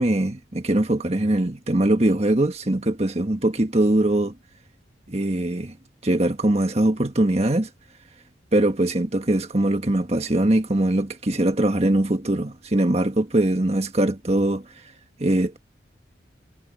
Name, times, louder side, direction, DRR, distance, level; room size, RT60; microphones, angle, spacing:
voice 1, 0.0-4.3 5.1-5.8 6.0-7.7 8.5-14.7 15.2-15.6, right 1 dB, 35° right, 1.5 m, -22 dB
head